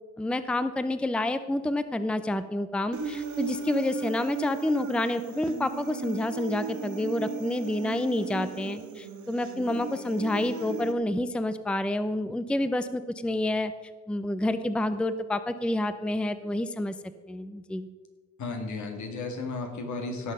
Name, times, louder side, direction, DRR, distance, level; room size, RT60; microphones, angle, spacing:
voice 1, 0.2-13.7 14.1-16.9 17.3-17.9, left 1 dB, 5° left, 12 dB, 0.5 m, -29 dB
Human voice, 2.9-10.9, right 4 dB, 70° right, 1.4 m, -36 dB
voice 2, 18.4-20.3, left 3 dB, 70° left, 3 dB, 2.3 m, -34 dB
17.0 x 6.3 x 5.4 m, 1.4 s
cardioid pair, 90°, 30 cm